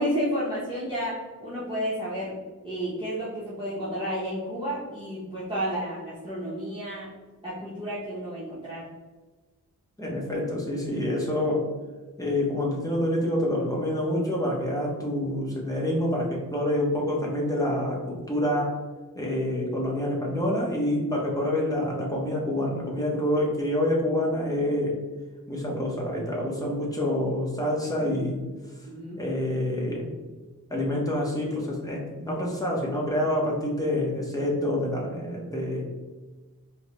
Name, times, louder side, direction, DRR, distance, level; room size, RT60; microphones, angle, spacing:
voice 1, 0.0-2.4 2.6-7.1 7.4-8.8 28.9-29.2, equal, 15° right, -10 dB, 1.0 m, -31 dB
voice 2, 10.0-11.7 12.2-18.8 19.1-25.0 25.5-28.4 29.2-30.1 30.7-35.8, left 1 dB, 10° left, -3 dB, 1.1 m, -27 dB
4.4 x 2.3 x 3.1 m, 1.3 s
wide cardioid pair, 65°, 35 cm